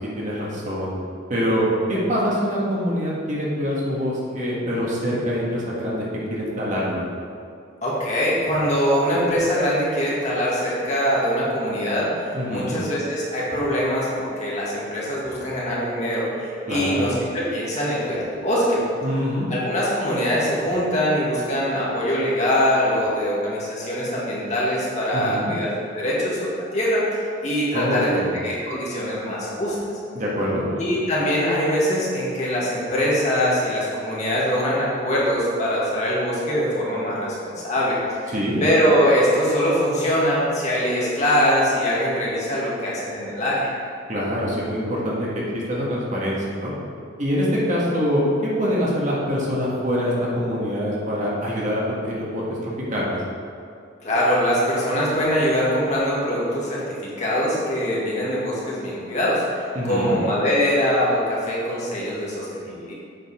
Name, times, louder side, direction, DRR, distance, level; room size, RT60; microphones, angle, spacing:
voice 1, 0.2-0.9 1.3-7.0 12.3-12.7 16.7-17.1 19.0-19.5 25.1-25.5 27.7-28.3 30.1-30.7 38.3-38.6 44.1-45.4 45.7-46.7 47.2-53.2 59.7-60.2, equal, 40° right, -5 dB, 1.6 m, -24 dB
voice 2, 7.8-18.8 19.5-29.8 30.8-38.3 38.6-43.6 54.0-62.9, equal, 35° left, -6 dB, 2.0 m, -23 dB
8.1 x 5.3 x 4.9 m, 2.4 s
head